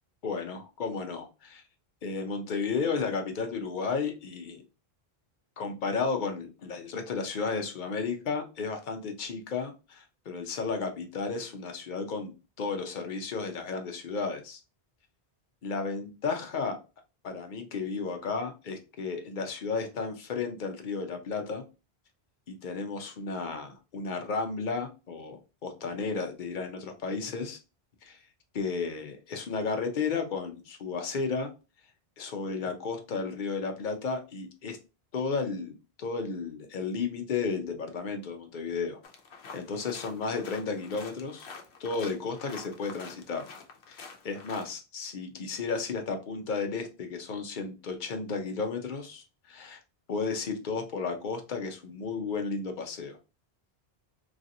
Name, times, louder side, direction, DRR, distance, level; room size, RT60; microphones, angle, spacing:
voice 1, 0.2-1.6 2.0-4.6 5.6-14.6 15.6-16.8 17.2-21.6 22.5-27.6 28.0-28.2 28.5-31.5 32.2-34.8 35.1-39.0 39.5-41.5 41.8-43.4 43.9-49.8 50.1-53.2, left 4 dB, 55° left, 5 dB, 0.8 m, -33 dB
sound 1, 39.0-44.7, left 5 dB, 90° left, 0.9 m, -47 dB
3.2 x 2.7 x 2.6 m, 0.30 s
omnidirectional pair, 1.0 m